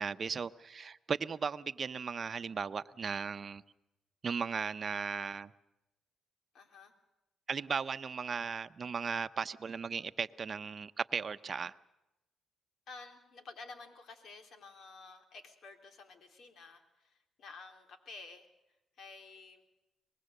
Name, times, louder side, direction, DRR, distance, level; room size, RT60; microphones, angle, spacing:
voice 1, 0.0-3.6 4.2-5.5 7.5-11.7, right 5 dB, 40° right, 0.8 m, -36 dB
voice 2, 6.5-6.9 12.9-18.5 19.0-19.6, left 4 dB, 65° left, 3.4 m, -51 dB
24.0 x 20.5 x 6.7 m
cardioid pair, 90°, 0 cm